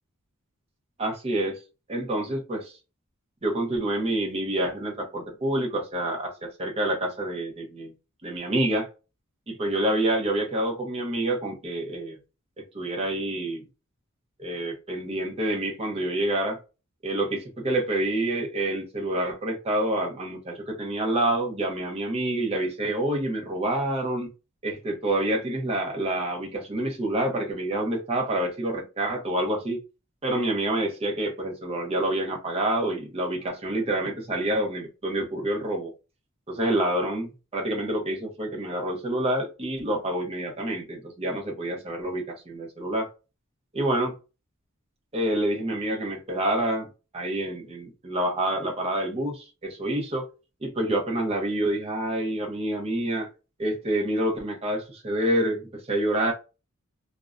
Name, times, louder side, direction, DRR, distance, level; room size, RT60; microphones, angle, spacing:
voice 1, 1.0-1.6 1.9-2.7 3.4-7.9 8.2-8.9 9.5-12.2 12.6-13.7 14.4-16.6 17.0-24.3 24.6-29.8 30.2-35.9 36.5-43.1 43.7-44.1 45.1-50.3 50.6-53.3 53.6-56.3, right 1 dB, 30° right, 0.7 m, -27 dB
2.5 x 2.1 x 2.3 m
head